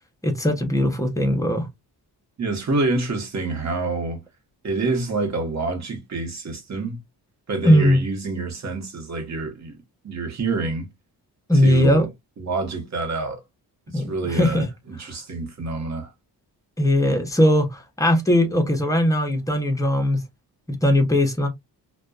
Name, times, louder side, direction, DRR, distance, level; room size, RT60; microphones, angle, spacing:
voice 1, 0.2-1.7 7.6-8.0 11.5-12.1 13.9-14.7 16.8-20.2 20.7-21.5, equal, 10° left, 0.6 m, -19 dB
voice 2, 2.4-4.2 4.6-7.0 7.5-9.8 10.0-10.9 11.6-12.1 12.4-13.4 13.9-16.1, right 3 dB, 40° right, 1.0 m, -27 dB
2.5 x 2.2 x 2.2 m
cardioid pair, 100°, 41 cm